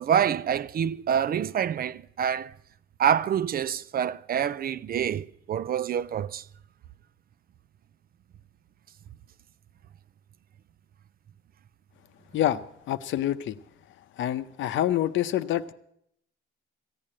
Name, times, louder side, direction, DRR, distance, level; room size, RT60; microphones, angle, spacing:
voice 1, 0.0-2.5 3.0-6.4, right 8 dB, 50° right, 0.5 m, -26 dB
voice 2, 12.3-13.6 14.2-15.7, left 12 dB, 75° left, 0.7 m, -27 dB
15.0 x 9.0 x 8.6 m
cardioid pair, 90°, 20 cm